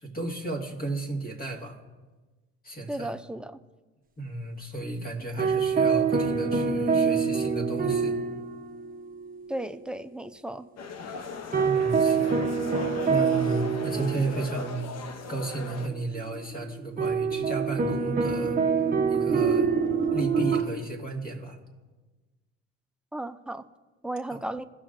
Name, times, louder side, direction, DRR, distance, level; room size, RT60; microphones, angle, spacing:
voice 1, 0.0-1.8 2.6-3.1 4.2-8.2 11.5-12.4 13.1-14.8 15.3-18.6 19.1-19.7 20.1-21.6 24.3-24.4, right 2 dB, 30° left, 2 dB, 1.8 m, -33 dB
voice 2, 2.9-3.6 9.5-10.7 23.1-23.6 24.0-24.6, right 1 dB, 5° right, 10 dB, 0.3 m, -34 dB
sound 1, 5.4-8.9 9.2-9.3 11.5-14.9 17.0-20.2, right 5 dB, 30° right, 0.7 m, -26 dB
sound 2, 10.8-15.9, left 4 dB, 60° left, 0.7 m, -38 dB
sound 3, 15.9-20.6, right 6 dB, 50° right, 1.3 m, -30 dB
16.5 x 6.2 x 2.5 m, 1.2 s
cardioid pair, 90°, 30 cm